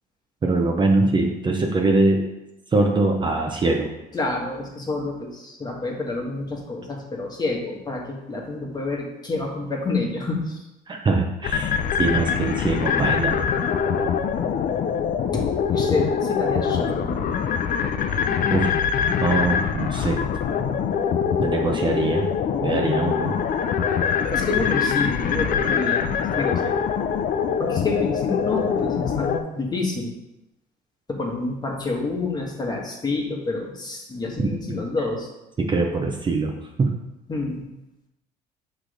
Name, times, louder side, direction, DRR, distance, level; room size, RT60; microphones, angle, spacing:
voice 1, 0.4-2.2 2.7-3.9 10.9-13.4 18.5-18.7 19.2-20.2 21.4-22.3 22.6-23.4 34.4-34.5 35.6-36.9, right 3 dB, 30° right, 2 dB, 0.7 m, -22 dB
voice 2, 4.1-10.7 15.3-17.2 24.3-26.8 27.6-30.1 31.1-35.3 37.3-37.7, left 3 dB, 25° left, -1 dB, 1.4 m, -28 dB
sound 1, 11.4-29.4, left 7 dB, 55° left, 0.6 m, -24 dB
6.0 x 3.3 x 5.0 m, 0.93 s
cardioid pair, 110°, 17 cm